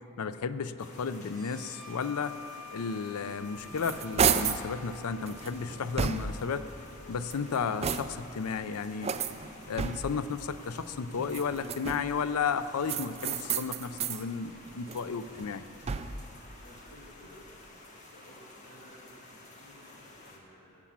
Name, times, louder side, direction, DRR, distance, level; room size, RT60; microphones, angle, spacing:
voice 1, 0.2-2.4 2.7-6.7 7.1-9.1 9.6-15.6, left 5 dB, 80° left, 13 dB, 0.5 m, -33 dB
sound 1, 0.8-20.4, left 2 dB, 35° left, 1.5 m, -52 dB
sound 2, 1.2-8.5, left 4 dB, ahead, 2.8 m, -51 dB
sound 3, 3.4-4.7 5.3-6.5 7.1-8.4 9.0-10.3 11.2-12.2 12.8-14.2 14.7-16.3, right 6 dB, 30° right, 0.3 m, -32 dB
voice 2, 16.6-17.6 17.9-20.8, equal, 50° left, -9 dB, 2.6 m, -55 dB
17.5 x 7.1 x 7.3 m, 2.9 s
head